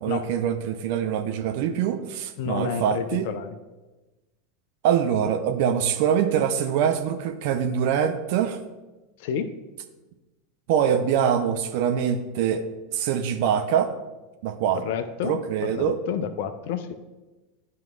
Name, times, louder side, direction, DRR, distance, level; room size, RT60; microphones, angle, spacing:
voice 1, 0.0-3.3 4.8-8.6 10.7-12.6 12.9-13.9 14.4-14.8 15.2-16.0, right 8 dB, 55° right, 7 dB, 0.5 m, -24 dB
voice 2, 2.4-3.6 9.2-9.5 14.8-16.9, left 7 dB, 55° left, 10 dB, 0.5 m, -30 dB
12.0 x 4.6 x 2.3 m, 1.1 s
figure-of-eight pair, 80°, 0 cm